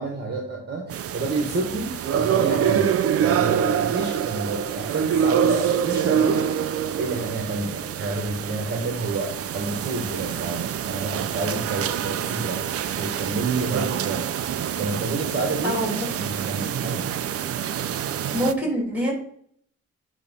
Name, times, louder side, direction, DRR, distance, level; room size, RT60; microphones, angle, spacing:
voice 1, 0.0-2.9 3.2-6.6 7.0-12.6 12.9-14.3 14.7-15.8 16.2-17.0, right 3 dB, 35° right, 1 dB, 1.2 m, -29 dB
sound 1, 0.9-18.5, right 9 dB, 50° right, 0.4 m, -26 dB
voice 2, 15.6-16.1 18.3-19.1, equal, 5° right, -2 dB, 2.8 m, -25 dB
8.5 x 3.1 x 5.3 m, 0.64 s
wide cardioid pair, 165°, 31 cm